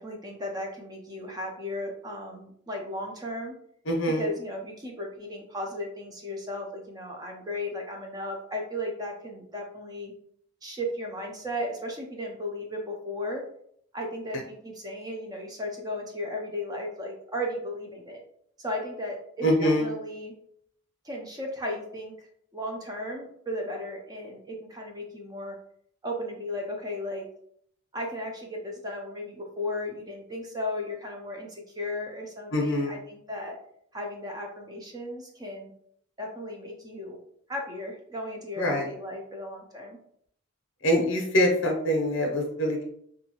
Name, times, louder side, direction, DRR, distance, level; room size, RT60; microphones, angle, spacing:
voice 1, 0.0-3.6 4.1-10.1 10.6-13.4 13.9-18.2 18.6-20.4 21.0-22.3 22.5-25.6 26.0-27.3 27.9-33.6 33.9-35.7 36.2-37.2 37.5-40.0, left 1 dB, 20° right, 1 dB, 0.4 m, -35 dB
voice 2, 3.9-4.3 19.4-19.9 32.5-33.0 38.6-38.9 40.8-42.8, equal, 60° left, 0 dB, 0.6 m, -24 dB
2.7 x 2.4 x 2.8 m, 0.68 s
head